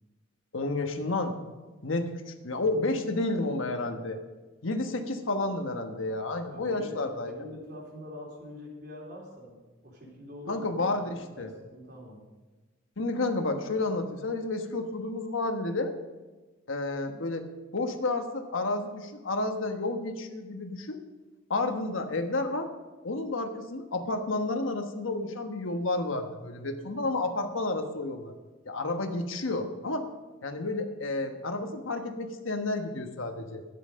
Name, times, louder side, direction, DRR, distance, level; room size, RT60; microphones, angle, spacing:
voice 1, 0.5-1.4 1.8-4.2 4.6-7.3 10.5-11.5 13.0-15.9 16.7-17.5 17.7-21.0 21.5-22.7 23.0-28.3 28.6-30.1 30.4-33.7, left 2 dB, 80° left, 6 dB, 1.3 m, -31 dB
voice 2, 6.5-12.2 26.7-27.1, left 1 dB, 60° right, -2 dB, 3.8 m, -45 dB
12.5 x 10.0 x 5.2 m, 1.2 s
head